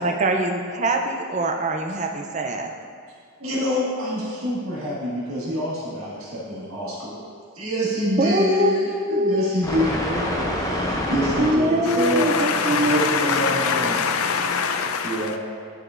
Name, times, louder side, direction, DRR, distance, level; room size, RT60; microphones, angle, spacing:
voice 1, 0.0-2.7 8.2-9.5 11.4-13.5, right 1 dB, 35° right, 3 dB, 0.5 m, -23 dB
voice 2, 3.4-7.2 7.6-14.0 15.0-15.4, equal, 80° right, -8 dB, 1.8 m, -26 dB
sound 1, 9.6-14.7, left 1 dB, 15° left, 0.6 m, -29 dB
voice 3, 11.9-15.4, left 6 dB, 80° left, 7 dB, 0.5 m, -24 dB
10.5 x 4.9 x 2.5 m, 2.1 s
head